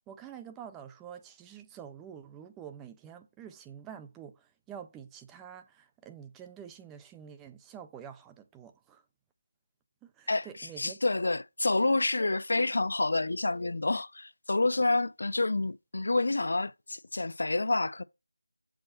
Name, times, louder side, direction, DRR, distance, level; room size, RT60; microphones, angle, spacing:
voice 1, 0.1-9.0 10.2-11.0, right 8 dB, 5° right, 0.3 m, -47 dB
voice 2, 10.3-18.0, left 2 dB, 55° left, 0.5 m, -28 dB
6.9 x 4.3 x 4.2 m
figure-of-eight pair, 175°, 0 cm